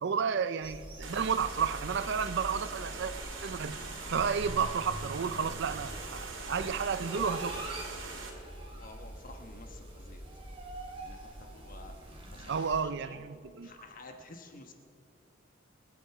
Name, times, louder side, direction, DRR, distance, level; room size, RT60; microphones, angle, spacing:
voice 1, 0.0-3.1 3.4-3.8 4.1-7.6 12.5-13.7, right 6 dB, 60° right, 0.4 m, -32 dB
sound 1, 0.6-12.8, right 1 dB, 30° right, 3.1 m, -44 dB
sound 2, 1.0-8.3, right 4 dB, 90° right, 2.5 m, -42 dB
voice 2, 8.7-10.2 11.0-11.9 12.3-13.2 13.6-14.7, left 2 dB, 45° left, 1.1 m, -51 dB
27.0 x 9.2 x 4.8 m
head